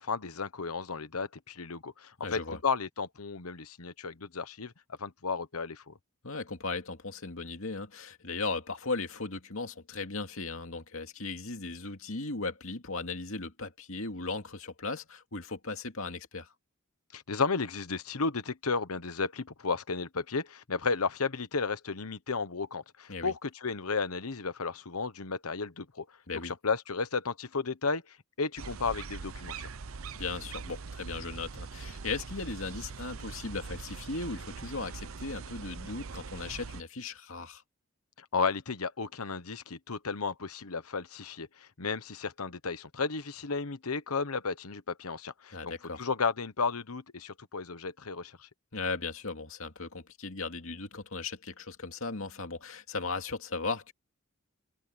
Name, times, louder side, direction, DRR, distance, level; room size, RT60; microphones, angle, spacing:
voice 1, 0.0-4.7 5.0-5.9 17.1-26.0 26.4-28.0 28.4-29.7 38.3-45.7 46.0-48.5, left 4 dB, 85° left, 1.2 m, -33 dB
voice 2, 2.2-2.6 6.2-16.5 23.1-23.3 26.3-26.5 30.1-37.6 45.5-46.0 48.7-53.9, left 3 dB, 65° left, 2.5 m, -37 dB
sound 1, 28.6-36.8, right 4 dB, 65° right, 0.7 m, -42 dB
head